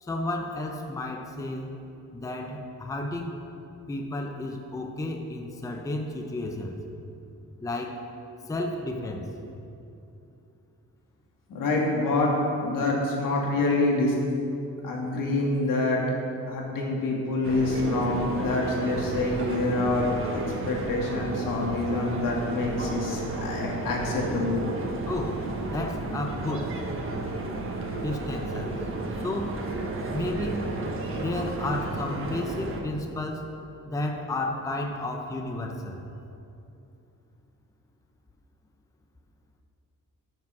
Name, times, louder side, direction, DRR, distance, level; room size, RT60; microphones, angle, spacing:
voice 1, 0.0-1.8 2.1-3.4 3.9-6.8 7.6-8.0 8.5-9.3 25.0-25.4 25.7-26.8 28.0-28.7 29.2-29.6 30.1-30.7 31.1-33.5 33.9-36.0, left 2 dB, 10° left, 3 dB, 0.6 m, -32 dB
voice 2, 11.5-12.3 12.6-14.2 14.8-16.0 16.5-24.6, left 2 dB, 80° left, -2 dB, 2.2 m, -26 dB
sound 1, 17.4-32.8, right 2 dB, 40° right, 1.1 m, -32 dB
12.0 x 6.0 x 5.9 m, 2.7 s
wide cardioid pair, 160°, 32 cm